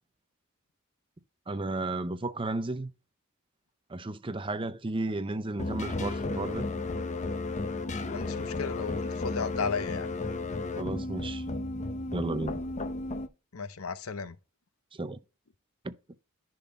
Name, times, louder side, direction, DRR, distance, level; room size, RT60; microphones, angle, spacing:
voice 1, 1.5-2.9 3.9-6.7 10.8-11.4 12.1-12.6 14.9-15.2 15.8-15.9, right 2 dB, 25° right, 0.6 m, -33 dB
sound 1, 5.6-13.3, left 2 dB, 35° left, 0.7 m, -33 dB
voice 2, 8.1-10.1 13.5-14.3, left 5 dB, 75° left, 0.7 m, -34 dB
10.5 x 4.0 x 4.2 m
head